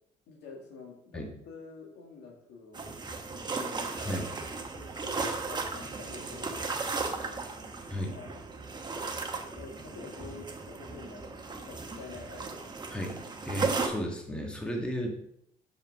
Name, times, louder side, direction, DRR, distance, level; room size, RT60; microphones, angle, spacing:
voice 1, 0.3-3.9 4.7-7.5 8.1-8.4 9.0-12.6, left 4 dB, 80° left, 0 dB, 2.2 m, -48 dB
sound 1, 2.7-13.9, right 4 dB, 25° right, 1.1 m, -36 dB
voice 2, 13.4-15.1, equal, 5° left, 1 dB, 1.5 m, -34 dB
5.6 x 5.5 x 6.2 m, 0.74 s
cardioid pair, 110°, 17 cm